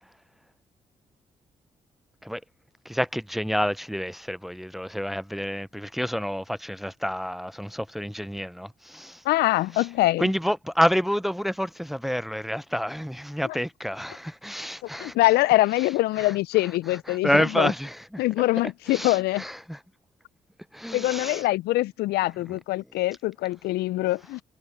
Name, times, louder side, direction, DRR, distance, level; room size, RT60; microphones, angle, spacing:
voice 1, 2.9-9.2 9.7-9.9 10.2-15.2 16.2-16.3 16.9-18.2 18.9-19.8 20.7-21.4 22.5-22.6, equal, ahead, 0.6 m, -28 dB
voice 2, 9.2-10.3 13.4-13.6 15.0-17.7 18.2-19.4 20.9-24.4, left 18 dB, 75° left, 0.4 m, -24 dB
hypercardioid pair, 45°, 17 cm